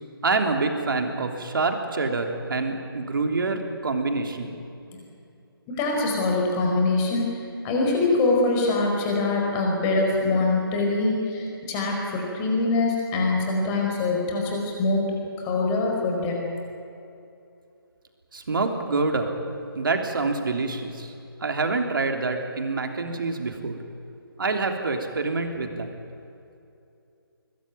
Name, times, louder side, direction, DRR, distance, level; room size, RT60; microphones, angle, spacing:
voice 1, 0.2-4.5 18.3-19.3 19.7-21.1 21.4-23.8 24.4-25.9, right 3 dB, 60° right, 4 dB, 3.4 m, -26 dB
voice 2, 5.7-7.4 7.6-15.0 15.4-16.5, left 3 dB, 15° left, 0 dB, 4.7 m, -24 dB
21.5 x 20.5 x 9.2 m, 2.7 s
figure-of-eight pair, 160°, 13 cm